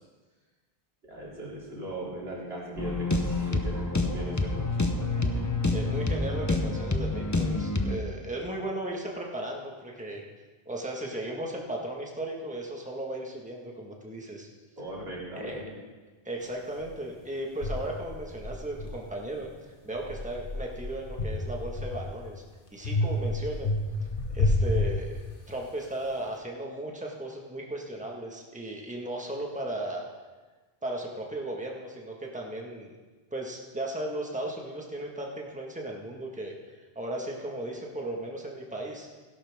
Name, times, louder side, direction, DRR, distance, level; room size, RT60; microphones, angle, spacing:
voice 1, 1.1-5.1 14.8-15.7, right 1 dB, 80° right, -6 dB, 3.6 m, -39 dB
sound 1, 2.8-8.0, left 2 dB, 20° left, 0.7 m, -28 dB
voice 2, 5.7-10.2 10.6-14.5 15.3-15.6 16.2-19.5 19.8-22.4 22.7-23.7 24.3-25.2 25.5-30.0 30.8-32.9 33.3-36.5 36.9-39.1, right 1 dB, 5° right, -1 dB, 1.7 m, -36 dB
sound 2, 16.8-16.9 17.6-19.5 19.9-22.3 22.8-25.6, left 2 dB, 55° left, 1.7 m, -30 dB
16.5 x 11.0 x 3.7 m, 1.3 s
omnidirectional pair, 1.0 m